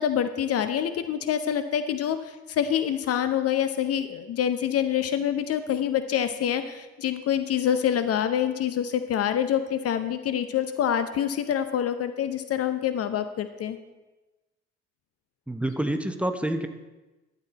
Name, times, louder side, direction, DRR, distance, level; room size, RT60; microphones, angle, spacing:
voice 1, 0.0-13.8, left 9 dB, 45° left, 10 dB, 0.7 m, -26 dB
voice 2, 15.5-16.7, right 1 dB, 5° right, 7 dB, 0.9 m, -27 dB
12.0 x 8.3 x 4.1 m, 1.1 s
figure-of-eight pair, 50°, 35 cm